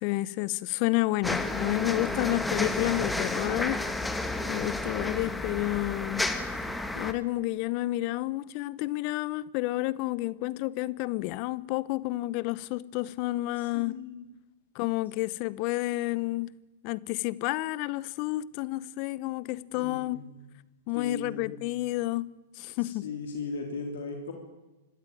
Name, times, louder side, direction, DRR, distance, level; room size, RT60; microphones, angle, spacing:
voice 1, 0.0-3.8 4.5-6.3 6.9-14.0 14.7-16.6 16.8-20.2 20.9-22.3 22.6-23.1, left 19 dB, 45° left, 0.9 m, -30 dB
sound 1, 1.2-7.1, left 2 dB, 5° left, 1.8 m, -31 dB
voice 2, 13.6-14.3 19.7-20.3 20.9-21.5 22.8-24.3, left 4 dB, 75° left, 3.1 m, -38 dB
25.5 x 13.0 x 9.1 m
hypercardioid pair, 115°, 0 cm